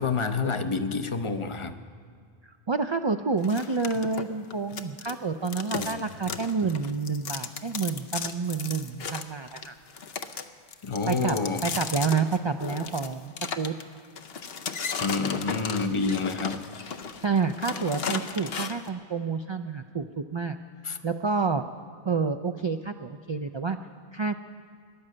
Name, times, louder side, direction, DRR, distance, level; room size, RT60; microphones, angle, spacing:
voice 1, 0.0-1.8 5.8-5.9 6.2-6.4 10.8-11.6 15.0-16.6 20.8-21.0, left 4 dB, 35° left, 9 dB, 0.7 m, -28 dB
voice 2, 2.4-9.8 11.1-11.4 11.6-13.7 17.2-20.6 21.0-21.6 22.0-23.8 24.1-24.4, right 4 dB, 45° right, 7 dB, 0.3 m, -29 dB
sound 1, 3.4-5.2 5.4-18.9, left 6 dB, 70° left, 1.0 m, -35 dB
17.0 x 11.0 x 7.6 m, 2.1 s
omnidirectional pair, 1.0 m